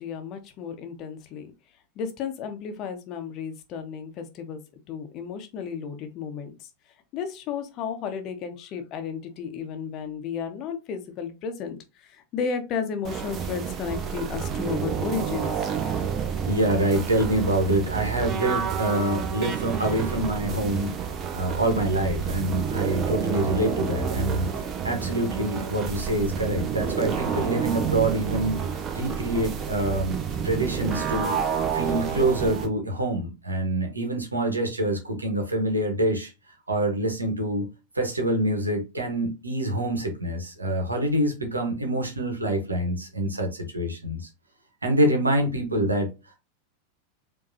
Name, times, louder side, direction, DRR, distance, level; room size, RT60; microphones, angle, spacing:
voice 1, 0.0-1.5 2.0-4.6 4.9-6.7 7.1-15.9, left 6 dB, 40° left, 0.9 m, -33 dB
sound 1, 13.0-32.7, right 7 dB, 30° right, 0.9 m, -29 dB
voice 2, 16.4-21.1 21.3-24.5 24.8-28.6 28.9-30.2 30.4-31.3 31.7-36.3 36.7-37.7 37.9-44.3 44.8-46.1, right 1 dB, 85° right, 1.2 m, -26 dB
4.9 x 2.8 x 2.7 m
figure-of-eight pair, 90°, 0 cm